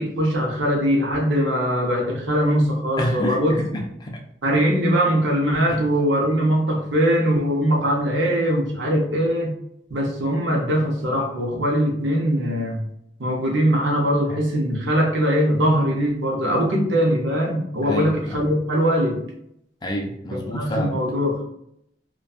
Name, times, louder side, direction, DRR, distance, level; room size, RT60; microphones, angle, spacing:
voice 1, 0.0-3.6 4.4-9.5 9.9-12.8 13.2-19.2 20.3-21.4, equal, 80° right, 0 dB, 0.7 m, -21 dB
voice 2, 3.0-4.2 5.7-5.8 17.8-18.5 19.8-21.0, equal, 20° left, 1 dB, 0.3 m, -28 dB
2.6 x 2.2 x 2.3 m, 0.75 s
head